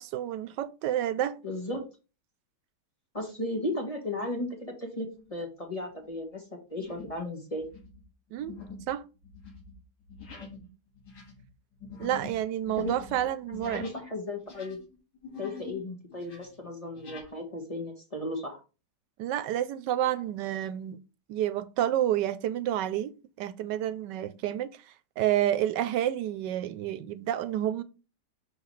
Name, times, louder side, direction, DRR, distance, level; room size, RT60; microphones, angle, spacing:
voice 1, 0.0-1.4 8.3-8.6 8.9-9.0 12.0-13.9 19.2-21.0 21.3-23.1 23.4-24.7 25.2-27.8, right 12 dB, 85° right, 1.2 m, -29 dB
voice 2, 1.4-1.9 3.1-6.4 6.7-7.6 12.8-12.9 13.6-14.8 15.4-18.6, left 1 dB, 25° left, 1.2 m, -35 dB
sound 1, 5.1-5.4 5.9-6.2 6.8-7.2 7.5-14.1 14.4-15.8 16.1-17.3, left 4 dB, 75° left, 2.2 m, -46 dB
5.7 x 5.3 x 3.1 m
omnidirectional pair, 1.8 m